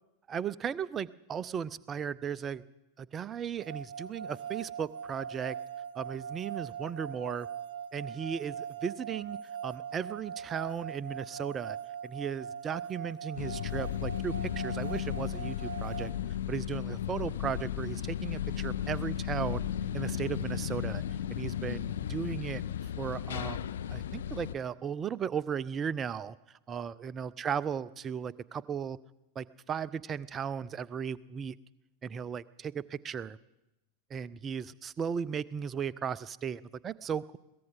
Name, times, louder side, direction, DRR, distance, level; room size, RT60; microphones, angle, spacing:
voice 1, 0.3-2.6 3.0-5.6 6.0-7.5 7.9-9.4 9.6-11.8 12.0-16.1 16.5-19.7 19.9-21.0 21.3-22.6 23.0-26.3 26.7-29.0 29.4-31.6 32.0-33.4 34.1-37.4, right 7 dB, 25° right, 18 dB, 0.5 m, -36 dB
sound 1, 3.6-16.1, right 7 dB, 60° right, 0.7 m, -41 dB
sound 2, 13.3-24.6, left 10 dB, 60° left, 0.5 m, -35 dB
22.0 x 17.0 x 3.8 m, 0.94 s
figure-of-eight pair, 90°, 0 cm